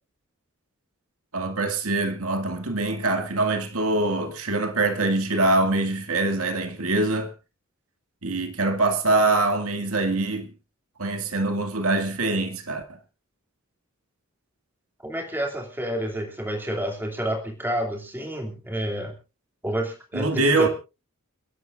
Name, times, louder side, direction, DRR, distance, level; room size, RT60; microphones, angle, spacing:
voice 1, 1.3-7.3 8.2-10.5 11.0-12.8 20.1-20.7, right 2 dB, 85° right, 2.1 m, -24 dB
voice 2, 15.0-19.1 19.6-20.7, right 1 dB, 10° right, 2.5 m, -29 dB
29.5 x 11.0 x 2.5 m
head